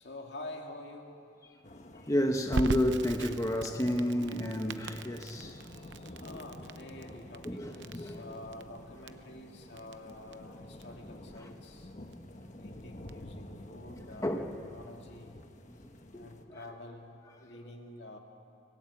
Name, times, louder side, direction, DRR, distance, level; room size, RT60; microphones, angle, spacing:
voice 1, 0.0-1.3 5.8-11.9 12.6-14.4 14.7-15.4 16.1-18.2, left 1 dB, 65° left, 2 dB, 2.3 m, -48 dB
sound 1, 1.6-16.4, left 1 dB, 40° left, 1.3 m, -49 dB
voice 2, 2.1-5.7 7.4-8.2 11.4-11.5 13.7-13.8 14.2-14.5 15.7-16.6, equal, 20° left, 4 dB, 1.1 m, -31 dB
Crackle, 2.5-13.3, right 3 dB, 85° right, 0.7 m, -41 dB
25.5 x 16.5 x 8.5 m, 2.5 s
head